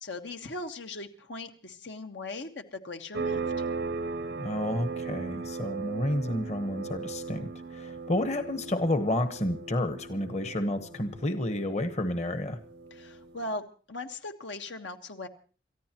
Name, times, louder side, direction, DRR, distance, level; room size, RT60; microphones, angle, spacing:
voice 1, 0.0-3.5 12.9-15.3, left 2 dB, 80° left, 5 dB, 1.4 m, -39 dB
sound 1, 3.1-13.5, right 4 dB, 65° right, 0.8 m, -37 dB
voice 2, 4.4-12.6, left 1 dB, 35° left, 9 dB, 1.2 m, -30 dB
28.5 x 14.5 x 3.0 m, 0.38 s
head